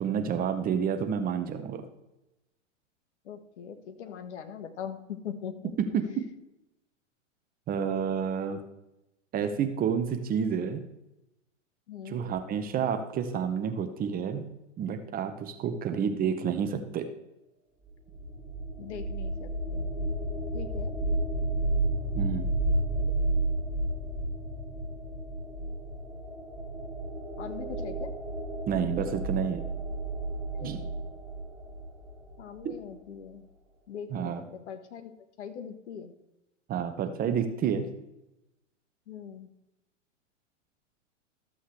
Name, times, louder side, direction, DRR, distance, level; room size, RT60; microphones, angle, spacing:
voice 1, 0.0-1.8 5.8-6.3 7.7-8.6 9.3-10.8 12.1-14.4 14.8-17.1 22.2-22.5 28.7-29.6 30.6-30.8 32.6-32.8 34.1-34.4 36.7-37.9, right 7 dB, 25° right, 7 dB, 0.9 m, -29 dB
voice 2, 3.3-5.7 11.9-12.3 15.6-16.0 18.8-19.9 20.5-20.9 27.4-28.1 30.5-30.9 32.4-33.4 33.9-34.3 34.7-35.1 35.4-36.1 39.1-39.5, left 8 dB, 60° left, 7 dB, 1.4 m, -41 dB
sound 1, 17.8-32.7, right 2 dB, 5° left, 3.8 m, -32 dB
13.5 x 7.6 x 3.3 m, 0.92 s
hypercardioid pair, 115°, 38 cm